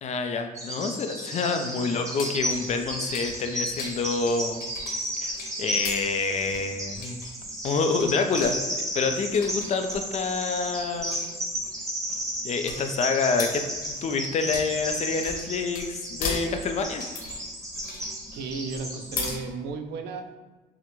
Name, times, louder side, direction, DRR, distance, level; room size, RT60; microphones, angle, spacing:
voice 1, 0.0-4.6 5.2-7.2 7.6-11.3 12.4-13.6 14.0-17.0, left 4 dB, 40° left, 6 dB, 0.4 m, -27 dB
Bird vocalization bird call bird song, 0.5-19.3, equal, 20° right, 1.1 m, -34 dB
sound 1, 2.2-19.4, left 4 dB, 60° left, 1.1 m, -39 dB
voice 2, 18.3-20.4, right 4 dB, 75° right, 7 dB, 0.5 m, -34 dB
5.9 x 2.1 x 3.0 m, 1.3 s
cardioid pair, 110°, 17 cm